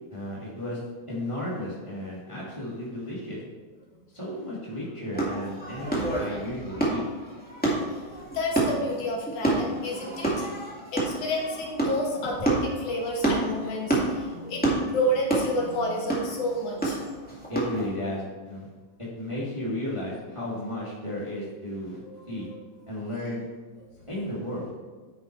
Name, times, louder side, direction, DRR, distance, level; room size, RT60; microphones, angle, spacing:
voice 1, 0.1-0.8 1.1-3.4 4.1-7.0 17.5-18.7 19.0-22.0 22.3-22.5 22.9-23.4 24.1-24.7, left 1 dB, 15° right, -6 dB, 1.5 m, -34 dB
sound 1, 5.1-17.8, right 2 dB, 5° left, 1.3 m, -28 dB
voice 2, 8.3-10.5 10.9-17.0 22.0-22.6, equal, 80° left, -2 dB, 3.0 m, -30 dB
9.9 x 5.6 x 4.5 m, 1.4 s
omnidirectional pair, 3.4 m